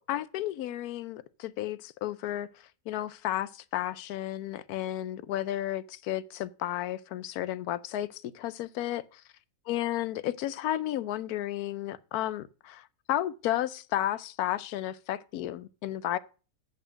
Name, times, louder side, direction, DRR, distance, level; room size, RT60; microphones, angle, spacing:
voice 1, 0.0-2.5 2.9-9.2 9.7-16.2, left 13 dB, 90° left, 1.1 m, -33 dB
8.3 x 5.5 x 6.2 m
omnidirectional pair, 1.5 m